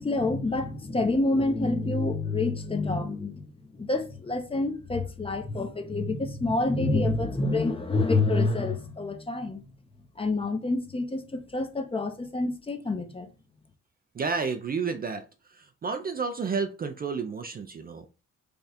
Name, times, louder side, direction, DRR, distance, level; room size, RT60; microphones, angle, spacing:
voice 1, 0.0-9.6 10.2-13.3, left 2 dB, 20° left, 0.7 m, -27 dB
voice 2, 14.1-18.1, right 5 dB, 30° right, 0.4 m, -31 dB
3.4 x 2.3 x 4.1 m
cardioid pair, 90°, 30 cm